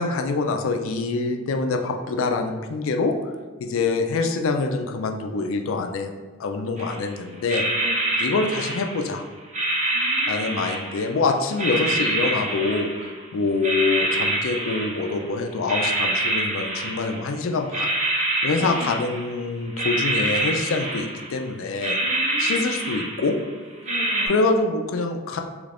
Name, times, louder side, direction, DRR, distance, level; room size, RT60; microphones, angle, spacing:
voice 1, 0.0-3.1 3.6-6.1 6.4-7.6 8.2-9.2 10.3-17.9 18.4-22.0 22.4-23.4 24.3-25.4, left 3 dB, 70° left, 5 dB, 0.4 m, -25 dB
sound 1, 6.8-7.1 7.4-9.1 9.5-11.2 11.6-13.2 13.6-15.3 15.7-17.4 17.7-19.4 19.8-21.4 21.8-23.4 23.9-24.3, right 1 dB, 35° right, 0.6 m, -26 dB
voice 2, 9.9-10.6 18.5-18.9 22.0-22.8 23.8-24.4, left 1 dB, 75° right, -4 dB, 1.1 m, -39 dB
3.1 x 2.5 x 3.3 m, 1.4 s
head